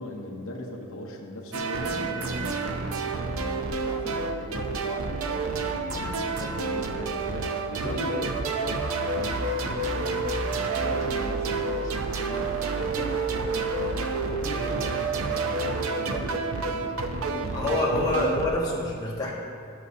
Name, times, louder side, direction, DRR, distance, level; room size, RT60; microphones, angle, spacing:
voice 1, 0.0-10.3 10.5-18.1, left 1 dB, 70° left, 0 dB, 0.8 m, -38 dB
sound 1, 1.5-18.5, right 3 dB, 75° right, 0.6 m, -29 dB
voice 2, 17.5-19.3, left 1 dB, 15° left, -6 dB, 1.3 m, -27 dB
13.0 x 6.4 x 2.8 m, 2.6 s
head